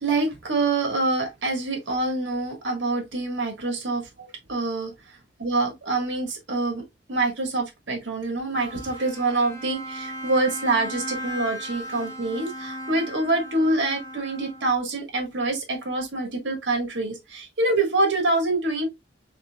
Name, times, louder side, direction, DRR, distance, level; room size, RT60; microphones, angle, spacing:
voice 1, 0.0-4.9 5.4-6.8 7.1-18.9, right 2 dB, 90° right, 1.6 m, -26 dB
Bowed string instrument, 8.5-15.0, equal, 15° left, 1.0 m, -37 dB
4.3 x 3.6 x 2.3 m
head